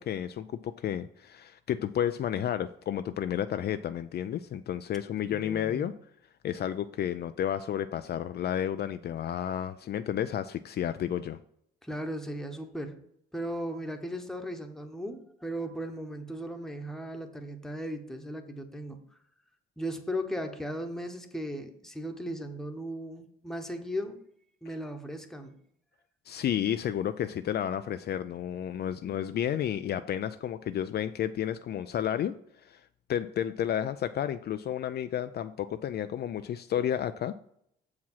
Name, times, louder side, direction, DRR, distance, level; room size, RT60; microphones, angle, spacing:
voice 1, 0.0-5.9 6.4-11.4 26.3-32.4 32.6-32.8 33.1-37.3, left 10 dB, 55° left, 10 dB, 0.4 m, -31 dB
voice 2, 5.3-5.9 11.8-13.0 13.3-19.0 19.8-24.2 24.6-25.6, equal, ahead, 5 dB, 1.1 m, -37 dB
7.3 x 4.8 x 5.6 m, 0.72 s
cardioid pair, 90°, 20 cm